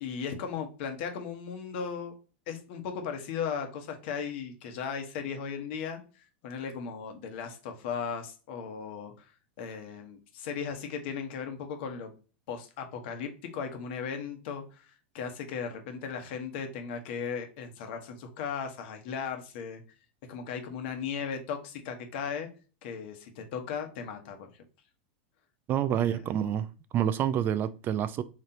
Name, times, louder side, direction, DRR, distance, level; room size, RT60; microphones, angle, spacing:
voice 1, 0.0-2.1 2.5-9.3 9.6-12.1 12.5-14.9 15.1-19.8 20.3-22.5 22.8-24.5 25.9-26.2, left 6 dB, 65° left, 1.0 m, -37 dB
voice 2, 25.7-28.2, right 10 dB, 35° right, 0.3 m, -28 dB
3.9 x 3.2 x 2.8 m
supercardioid pair, 125°, 6 cm